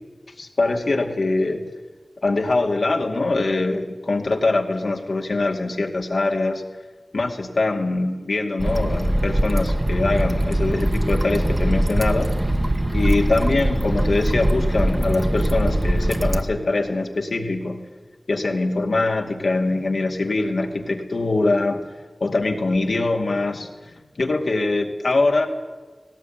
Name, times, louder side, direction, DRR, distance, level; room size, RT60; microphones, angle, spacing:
voice 1, 0.4-1.6 2.2-6.6 7.1-12.3 12.9-17.8 18.3-21.9 22.2-25.5, left 2 dB, 80° left, 3 dB, 2.4 m, -23 dB
sound 1, 8.6-16.4, right 1 dB, 30° right, 1.1 m, -22 dB
18.5 x 17.5 x 9.3 m, 1.3 s
wide cardioid pair, 65°, 0 cm